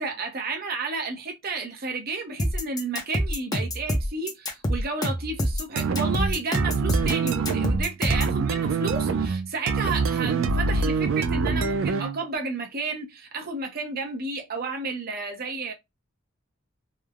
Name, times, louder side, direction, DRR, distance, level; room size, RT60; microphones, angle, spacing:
voice 1, 0.0-15.7, right 3 dB, 50° right, 0.7 m, -32 dB
sound 1, 2.4-8.4, equal, 20° left, 0.6 m, -26 dB
sound 2, 5.8-12.2, right 4 dB, 85° right, 0.4 m, -25 dB
3.1 x 2.1 x 2.3 m
head